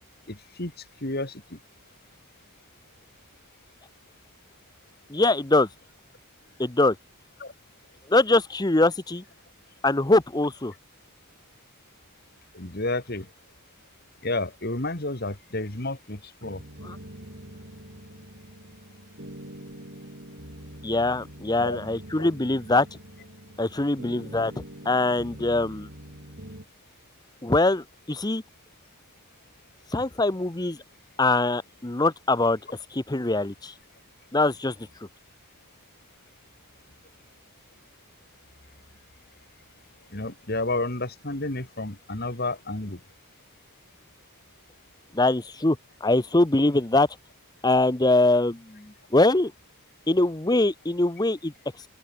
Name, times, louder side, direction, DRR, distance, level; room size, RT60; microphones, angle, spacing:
voice 1, 0.3-0.7 1.0-1.6 7.4-7.5 12.5-13.3 14.2-16.6 21.6-21.8 22.2-22.3 24.1-24.3 40.1-43.0, left 2 dB, 45° left, 2.8 m, -31 dB
voice 2, 5.1-5.7 6.6-7.0 8.1-9.2 9.8-10.7 16.8-17.0 20.8-23.0 23.6-24.5 24.8-25.9 27.4-28.4 29.9-30.8 31.2-32.6 32.9-33.7 34.3-34.7 45.1-47.1 47.6-49.5 50.1-51.5, left 2 dB, 20° left, 0.8 m, -23 dB
sound 1, 16.4-26.7, right 1 dB, 50° right, 4.5 m, -44 dB
open air
head